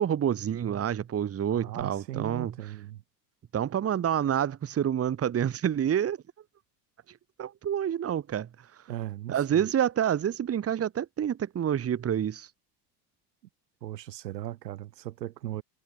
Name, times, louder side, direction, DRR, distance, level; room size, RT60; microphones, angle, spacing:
voice 1, 0.0-2.5 3.5-6.2 7.4-8.5 9.3-12.5, right 9 dB, 30° right, 1.3 m, -28 dB
voice 2, 1.5-3.0 8.9-9.7 13.8-15.6, right 14 dB, 85° right, 2.3 m, -38 dB
hypercardioid pair, 85°, 48 cm